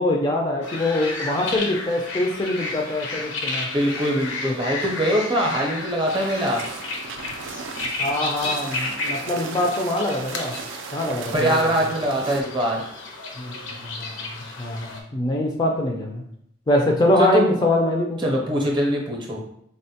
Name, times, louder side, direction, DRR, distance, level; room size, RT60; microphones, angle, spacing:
voice 1, 0.0-3.7 4.4-4.5 8.0-10.6 10.9-11.6 13.4-16.2 16.7-18.2, left 1 dB, 20° left, 0 dB, 0.3 m, -24 dB
sound 1, 0.6-15.0, left 3 dB, 80° left, 0.5 m, -32 dB
voice 2, 3.7-6.6 11.3-12.8 17.2-17.5 18.2-19.4, equal, 25° right, -1 dB, 0.6 m, -22 dB
sound 2, 6.1-12.4, right 5 dB, 75° right, 0.3 m, -36 dB
3.7 x 2.1 x 2.7 m, 0.70 s
head